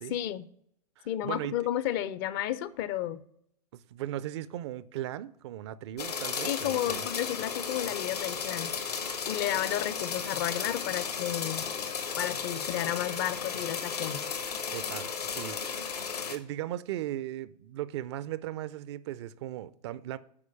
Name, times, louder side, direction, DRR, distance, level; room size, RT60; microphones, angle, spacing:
voice 1, 0.1-0.5 1.1-3.2 6.4-8.7 9.3-11.6 12.2-14.2, left 12 dB, 35° left, 0.5 m, -32 dB
voice 2, 1.0-1.5 3.7-7.1 14.7-16.0 16.3-20.2, right 13 dB, 45° right, 0.4 m, -37 dB
sound 1, 6.0-16.4, left 6 dB, 70° left, 1.2 m, -34 dB
8.5 x 4.9 x 6.7 m
figure-of-eight pair, 95°, 21 cm